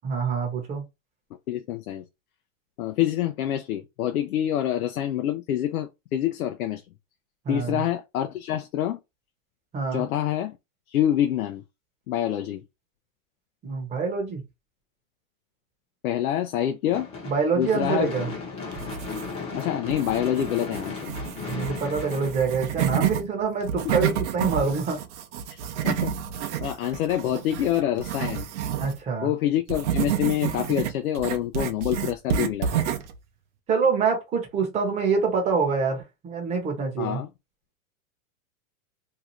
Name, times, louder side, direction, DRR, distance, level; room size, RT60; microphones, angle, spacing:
voice 1, 0.0-0.8 7.4-7.8 9.7-10.0 13.6-14.4 17.2-18.3 21.5-25.0 28.8-29.3 33.7-37.2, right 5 dB, 15° right, 0.8 m, -26 dB
voice 2, 1.5-2.0 2.8-6.8 7.5-9.0 9.9-10.5 10.9-11.6 12.1-12.6 16.0-17.1 17.6-18.1 19.5-21.1 23.8-23.9 25.5-25.6 25.8-26.1 26.4-28.5 29.2-32.8 37.0-37.3, left 11 dB, 85° left, 0.5 m, -26 dB
Gunshot gunfire / Fireworks, 16.9-23.2, left 4 dB, 15° left, 0.8 m, -36 dB
sound 1, 18.7-19.5 19.9-23.2 23.6-29.0 29.7-33.2, right 9 dB, 55° right, 0.6 m, -29 dB
2.7 x 2.4 x 2.9 m
hypercardioid pair, 145°, 42 cm